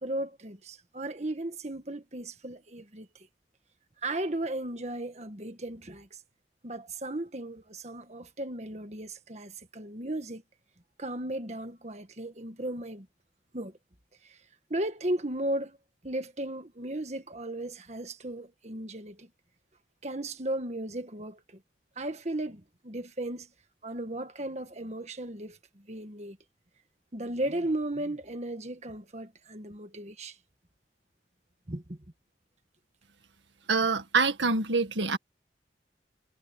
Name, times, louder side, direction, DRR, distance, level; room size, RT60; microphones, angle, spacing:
voice 1, 0.0-3.1 4.0-6.1 6.6-10.4 11.0-13.1 13.5-13.7 14.2-14.4 14.7-15.8 16.0-19.3 20.0-21.4 22.0-23.5 23.8-25.6 25.9-26.4 27.1-30.4 31.7-32.0, right 1 dB, 40° right, 1.6 m, -35 dB
voice 2, 33.7-35.2, right 4 dB, 90° right, 2.0 m, -25 dB
head